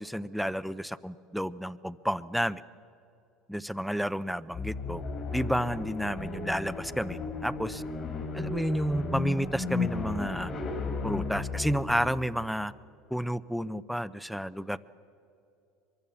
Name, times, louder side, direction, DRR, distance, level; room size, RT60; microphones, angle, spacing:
voice 1, 0.0-2.6 3.5-5.0 5.3-7.8 8.3-10.5 11.0-12.7 13.1-14.8, equal, ahead, 15 dB, 0.6 m, -31 dB
sound 1, 4.5-12.2, left 3 dB, 45° left, 4.3 m, -34 dB
24.0 x 23.0 x 7.1 m, 2.7 s
supercardioid pair, 110°, 0 cm